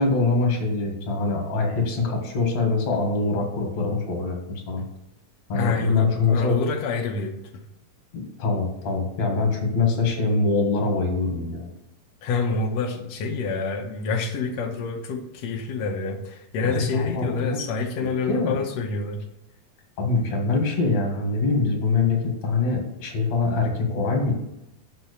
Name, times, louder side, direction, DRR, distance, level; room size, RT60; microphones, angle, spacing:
voice 1, 0.0-4.8 5.5-6.7 8.1-11.7 16.6-17.6 18.0-18.5 20.0-24.3, left 3 dB, 55° left, 2 dB, 2.5 m, -24 dB
voice 2, 5.5-7.6 12.2-19.2, left 4 dB, 75° left, 0 dB, 1.5 m, -27 dB
6.8 x 5.9 x 6.9 m, 0.88 s
omnidirectional pair, 4.2 m